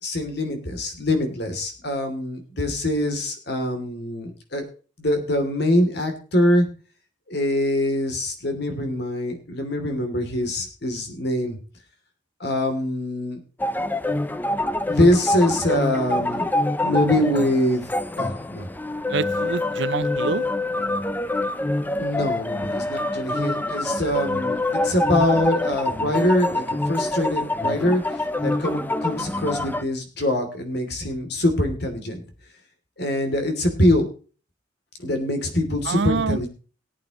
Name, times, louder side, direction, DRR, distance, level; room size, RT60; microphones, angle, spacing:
voice 1, 0.0-4.6 5.0-6.7 7.3-11.6 12.4-13.4 14.9-16.5 16.8-17.9 18.2-18.7 22.0-32.2 33.0-34.1 35.0-36.5, left 1 dB, 60° left, 2.8 m, -24 dB
sound 1, 13.6-29.8, left 2 dB, 10° left, 0.5 m, -25 dB
voice 2, 19.1-20.4 35.9-36.4, right 4 dB, 65° right, 0.5 m, -26 dB
19.0 x 8.6 x 3.0 m
head